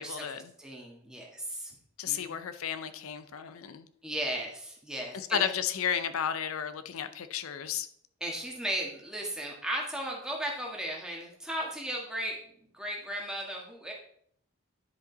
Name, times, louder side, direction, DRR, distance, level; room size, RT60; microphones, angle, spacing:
voice 1, 0.0-0.5 2.0-3.8 5.1-7.9, left 8 dB, 80° left, 10 dB, 0.5 m, -33 dB
voice 2, 0.6-1.7 2.0-2.4 4.0-5.5 8.2-13.9, right 1 dB, 5° right, -2 dB, 1.5 m, -36 dB
10.5 x 5.1 x 4.0 m, 0.66 s
head